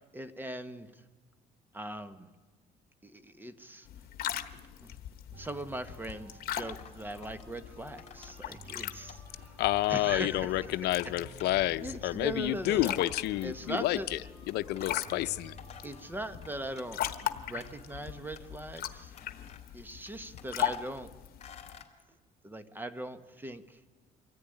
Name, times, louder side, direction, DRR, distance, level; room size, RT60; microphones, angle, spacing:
voice 1, 0.1-1.0 1.7-2.3 3.0-3.9 4.5-5.0 5.3-9.6 9.9-11.1 11.8-13.0 13.4-14.1 15.8-17.0 17.3-19.1 19.7-21.1 22.4-23.8, right 1 dB, 10° right, 11 dB, 1.3 m, -40 dB
sound 1, 3.9-21.8, left 12 dB, 65° left, 1.3 m, -40 dB
sound 2, 5.3-18.3, right 2 dB, 35° right, 5.7 m, -55 dB
sound 3, 5.4-6.2 6.8-7.4 8.0-8.4 8.7-9.5 9.8-10.2 10.5-10.8 11.4-11.6 11.9-12.0 12.7-13.8 14.5-14.9 15.3-16.9 17.2-17.9 18.4-18.8 19.1-19.8 20.1-21.0 21.4-21.9, left 7 dB, 40° left, 3.0 m, -54 dB
voice 2, 9.6-14.2 14.5-15.5, left 16 dB, 80° left, 13 dB, 0.7 m, -29 dB
24.0 x 14.0 x 9.9 m, 1.3 s
cardioid pair, 110°, 17 cm